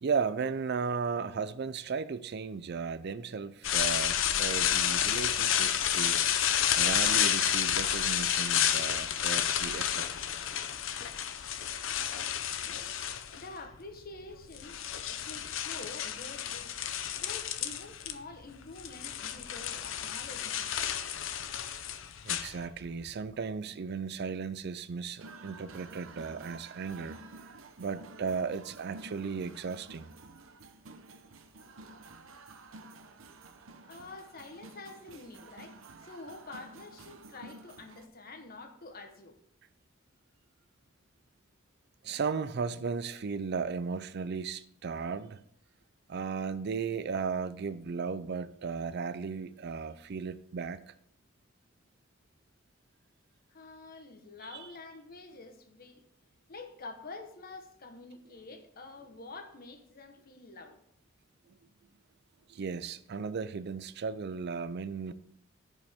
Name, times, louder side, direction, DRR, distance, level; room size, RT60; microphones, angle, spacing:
voice 1, 0.0-6.2 6.8-10.1 22.2-27.2 27.8-30.1 42.0-45.4 46.1-50.9 62.5-65.1, right 5 dB, 55° right, 0.4 m, -35 dB
sound 1, 3.6-13.6 14.3-18.1 18.4-23.0, left 10 dB, 70° left, 0.6 m, -30 dB
voice 2, 12.6-13.0 13.3-14.8 15.1-20.7 33.8-39.4 53.5-56.0 56.5-60.8, left 3 dB, 50° left, 1.2 m, -47 dB
sound 2, 25.2-38.1, right 3 dB, 80° right, 0.8 m, -51 dB
14.5 x 5.2 x 3.6 m
head